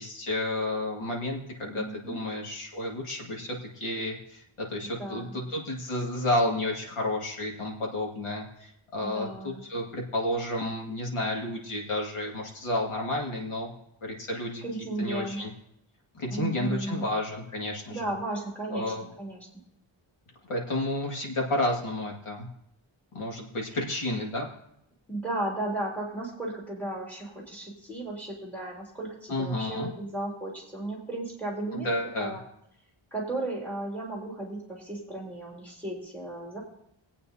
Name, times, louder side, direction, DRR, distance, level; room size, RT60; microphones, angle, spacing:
voice 1, 0.0-13.7 14.0-14.6 15.0-15.5 16.1-18.1 18.7-19.1 20.5-22.5 23.1-24.5 29.3-29.9 31.7-32.4, left 1 dB, 85° left, -1 dB, 2.2 m, -31 dB
voice 2, 1.7-2.2 5.0-5.4 9.0-9.6 14.6-15.4 16.3-17.1 17.9-19.5 25.1-32.4 33.1-36.6, right 2 dB, 5° left, -3 dB, 3.3 m, -35 dB
23.0 x 8.6 x 2.8 m, 0.77 s
wide cardioid pair, 160°, 50 cm